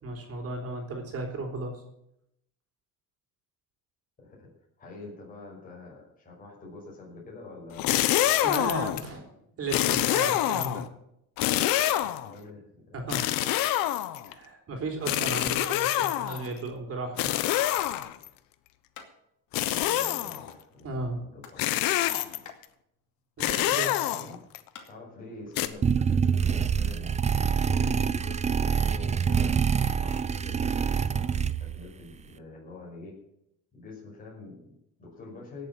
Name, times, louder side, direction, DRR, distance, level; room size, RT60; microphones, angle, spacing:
voice 1, 0.0-1.8 8.3-9.3 9.6-10.9 12.9-13.3 14.3-17.4 20.8-21.2 23.4-24.0 27.7-28.0, right 2 dB, 45° right, 3 dB, 3.9 m, -35 dB
voice 2, 4.2-4.5 4.8-8.1 9.3-9.6 10.2-10.4 12.0-13.2 19.8-21.7 23.4-23.7 24.1-24.3 24.9-27.2 27.6-33.2 33.7-35.7, left 2 dB, 25° left, -4 dB, 5.7 m, -46 dB
sound 1, 7.7-9.1 9.7-10.9 11.4-12.3 13.1-14.3 15.1-16.5 17.2-18.3 19.5-20.5 21.6-22.5 23.4-24.6 25.6-25.7, left 13 dB, 90° left, 1.0 m, -26 dB
sound 2, 18.9-19.1 19.4-19.5 19.8-20.6 21.1-21.6 21.9-24.8, left 7 dB, 60° left, 2.5 m, -49 dB
sound 3, 25.8-31.9, right 6 dB, 20° right, 0.5 m, -26 dB
17.5 x 7.5 x 7.6 m, 0.79 s
cardioid pair, 140°, 34 cm